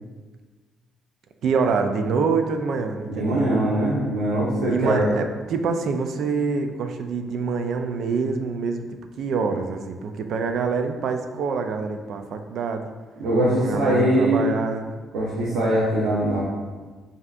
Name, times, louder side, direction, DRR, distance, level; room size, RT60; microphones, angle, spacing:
voice 1, 1.4-3.4 4.7-8.9 9.2-12.9 13.6-14.8, right 4 dB, 70° right, 6 dB, 0.3 m, -25 dB
voice 2, 3.1-5.1 13.2-14.5 15.1-16.4, right 1 dB, 85° right, -6 dB, 0.8 m, -22 dB
5.5 x 2.7 x 2.4 m, 1.4 s
cardioid pair, 90°, 0 cm